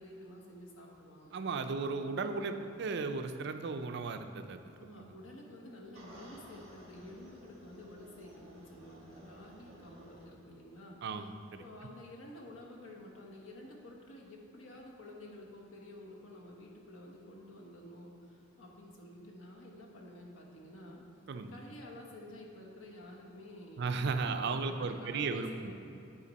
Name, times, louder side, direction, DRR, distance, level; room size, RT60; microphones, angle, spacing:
voice 1, 0.0-1.3 4.8-11.0 11.6-21.0 21.5-25.7, left 1 dB, 85° left, -1 dB, 1.2 m, -51 dB
voice 2, 1.3-4.8 11.0-11.6 21.3-21.5 23.8-25.7, right 4 dB, 55° right, 8 dB, 0.4 m, -35 dB
sound 1, 5.9-10.3, equal, 30° right, 1.4 m, -55 dB
10.0 x 4.4 x 4.1 m, 2.6 s
head